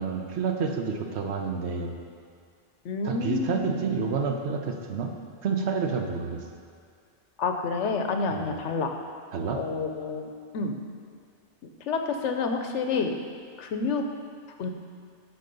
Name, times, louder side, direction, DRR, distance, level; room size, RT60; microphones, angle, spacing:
voice 1, 0.0-2.0 3.0-5.1 5.4-6.4 9.3-9.6, right 5 dB, 70° right, 3 dB, 1.1 m, -29 dB
voice 2, 2.8-3.8 7.4-8.9 9.5-10.7 11.8-13.1 13.6-14.1 14.6-14.7, left 4 dB, 80° left, 5 dB, 1.1 m, -29 dB
11.5 x 4.2 x 5.3 m, 2.2 s
omnidirectional pair, 1.2 m